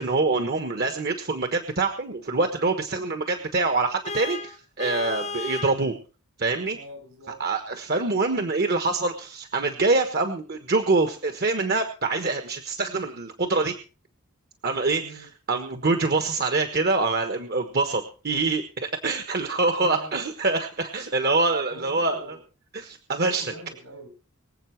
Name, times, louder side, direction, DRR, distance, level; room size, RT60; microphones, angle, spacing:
voice 1, 0.0-5.9 6.4-6.8 7.4-13.8 14.6-22.2 22.7-23.5, right 3 dB, 45° right, 7 dB, 1.3 m, -25 dB
Vehicle horn car horn honking, 4.0-5.8, left 4 dB, 30° left, 0.8 m, -33 dB
voice 2, 6.7-7.4 14.9-15.3 19.8-20.2 21.7-22.4 23.2-24.1, right 1 dB, 70° right, 5 dB, 7.2 m, -43 dB
23.5 x 8.0 x 4.6 m, 0.36 s
head